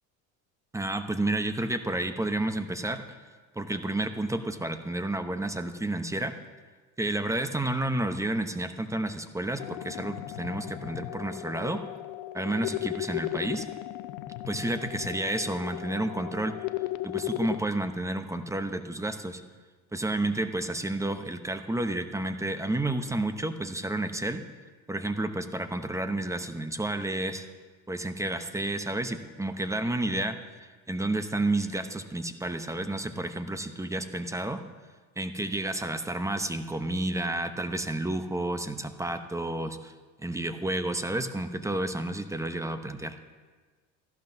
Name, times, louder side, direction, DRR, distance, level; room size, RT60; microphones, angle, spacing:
voice 1, 0.7-3.0 3.6-6.3 7.0-11.8 12.3-13.7 14.5-16.6 17.0-19.4 19.9-24.5 24.9-27.5 27.9-30.4 30.9-34.6 35.2-39.9 40.2-43.2, right 1 dB, 5° right, 9 dB, 0.7 m, -31 dB
sound 1, 9.6-17.6, left 16 dB, 70° left, 0.7 m, -36 dB
14.0 x 11.5 x 2.7 m, 1.4 s
hypercardioid pair, 80°, 42 cm